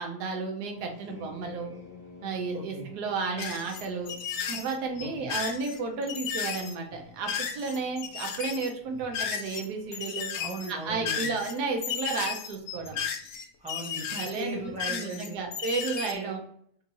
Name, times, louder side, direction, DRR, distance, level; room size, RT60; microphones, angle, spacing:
voice 1, 0.0-1.7 2.2-4.1 4.5-10.3 10.7-13.0 14.1-14.6 14.9-16.4, right 4 dB, 85° right, 2 dB, 1.3 m, -33 dB
sound 1, 0.7-10.0, left 6 dB, 30° left, 1.6 m, -52 dB
voice 2, 2.5-2.9 5.0-5.3 10.3-11.3 13.6-15.5 16.1-16.3, right 2 dB, 5° right, -3 dB, 0.7 m, -39 dB
sound 2, 3.4-9.6 9.9-16.1, left 7 dB, 75° left, 0.6 m, -34 dB
3.6 x 2.8 x 3.9 m, 0.66 s
omnidirectional pair, 1.7 m